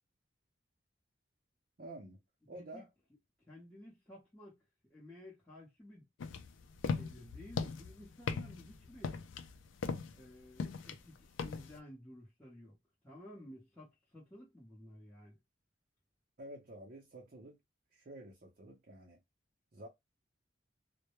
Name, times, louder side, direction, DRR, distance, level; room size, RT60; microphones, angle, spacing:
voice 1, 1.8-2.2 2.5-2.8 16.4-17.6 17.9-19.2 19.7-19.9, right 1 dB, 45° right, 0.5 m, -50 dB
voice 2, 2.5-2.9 3.4-4.6 4.9-6.1 6.9-9.2 10.1-12.8 13.0-15.4, left 1 dB, 10° left, 0.8 m, -54 dB
sound 1, 6.2-11.8, left 5 dB, 80° left, 0.4 m, -39 dB
2.2 x 2.1 x 2.9 m
head